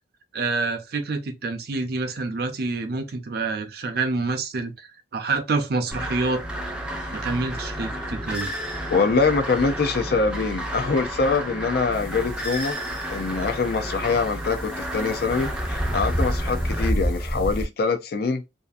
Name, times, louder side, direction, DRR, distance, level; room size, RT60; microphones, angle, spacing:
voice 1, 0.3-4.9 5.1-6.4 7.1-8.5, right 3 dB, 60° right, 0.5 m, -27 dB
sound 1, 5.9-16.9, equal, 5° right, 0.4 m, -32 dB
voice 2, 8.9-12.8 13.1-18.4, left 4 dB, 60° left, 0.4 m, -24 dB
sound 2, 11.9-17.7, equal, 30° left, 0.9 m, -29 dB
2.6 x 2.5 x 2.3 m
head